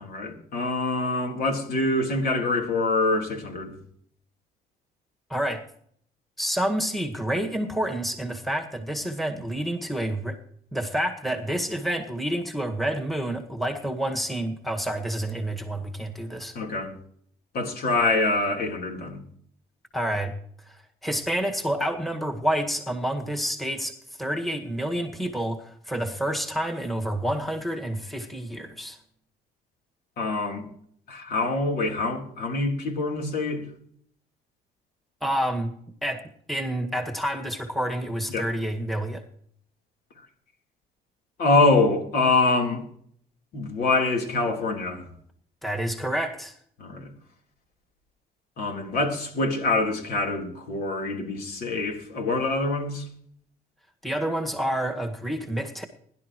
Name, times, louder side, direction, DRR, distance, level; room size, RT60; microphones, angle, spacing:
voice 1, 0.0-3.7 16.5-16.9 17.5-19.2 30.2-30.7 31.1-33.6 38.3-38.5 41.4-42.8 43.5-45.1 46.8-47.1 48.6-53.0, left 2 dB, 65° left, 2 dB, 3.7 m, -25 dB
voice 2, 5.3-5.6 6.4-10.4 10.7-16.5 19.9-20.3 20.7-29.0 35.2-35.7 36.0-36.2 36.5-39.2 45.6-46.5 54.0-55.8, right 1 dB, ahead, 4 dB, 1.8 m, -28 dB
21.5 x 11.5 x 3.1 m, 0.63 s
cardioid pair, 110°, 17 cm